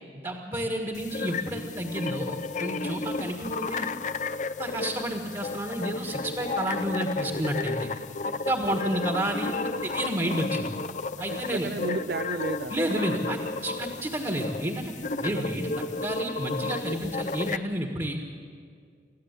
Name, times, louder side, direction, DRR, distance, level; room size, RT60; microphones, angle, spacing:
voice 1, 0.2-3.9 4.6-7.9 8.2-9.5 9.8-10.7 11.2-11.7 12.7-14.9 15.2-18.2, right 1 dB, 25° right, 2 dB, 1.7 m, -30 dB
sound 1, 0.9-17.6, left 3 dB, 40° left, 0.6 m, -33 dB
voice 2, 11.2-13.0 15.3-15.5, right 3 dB, 60° right, 10 dB, 0.6 m, -34 dB
29.0 x 14.5 x 8.4 m, 2.2 s
head